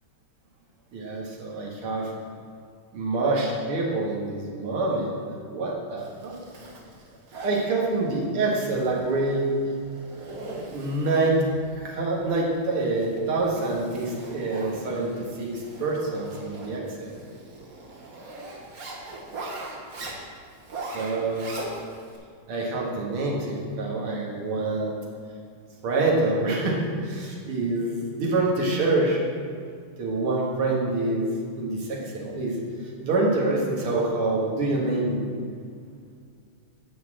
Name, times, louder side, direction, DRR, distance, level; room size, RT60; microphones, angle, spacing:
voice 1, 0.9-2.1 2.9-5.2 5.5-6.4 7.4-9.5 10.7-11.4 11.8-15.1 15.4-17.1 20.8-21.5 22.5-25.0 25.8-29.2 30.0-31.3 31.6-32.6 33.0-35.3, right 2 dB, 85° right, -2 dB, 2.5 m, -26 dB
Zipper (clothing), 6.0-22.2, right 2 dB, 45° right, 1.5 m, -41 dB
10.0 x 4.3 x 7.5 m, 2.2 s
omnidirectional pair, 2.3 m